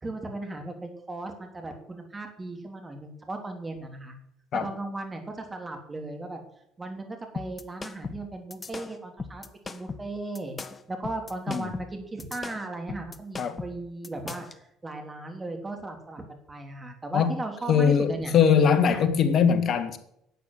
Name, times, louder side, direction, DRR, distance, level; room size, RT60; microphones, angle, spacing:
voice 1, 0.0-4.2 4.5-6.4 6.8-10.6 10.9-18.3 18.9-19.0, right 2 dB, 20° right, 3.0 m, -37 dB
sound 1, 7.4-14.6, left 4 dB, 30° left, 1.1 m, -39 dB
voice 2, 17.7-20.0, left 7 dB, 50° left, 1.6 m, -21 dB
11.0 x 8.4 x 7.7 m
hypercardioid pair, 60°, 0 cm